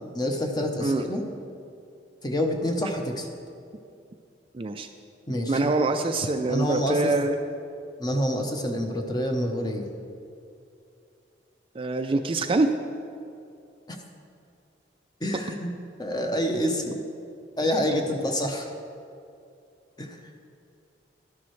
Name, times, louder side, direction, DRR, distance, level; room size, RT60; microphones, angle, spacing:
voice 1, 0.1-1.2 2.2-3.3 5.3-5.8 6.5-7.1 8.0-9.9 13.9-14.0 15.2-15.7 16.0-17.0 17.6-18.7 20.0-20.2, equal, 25° left, 3 dB, 0.9 m, -27 dB
voice 2, 4.5-4.9 5.5-7.3 11.7-12.7, right 2 dB, 30° right, 6 dB, 0.4 m, -24 dB
12.5 x 11.0 x 3.2 m, 2.5 s
head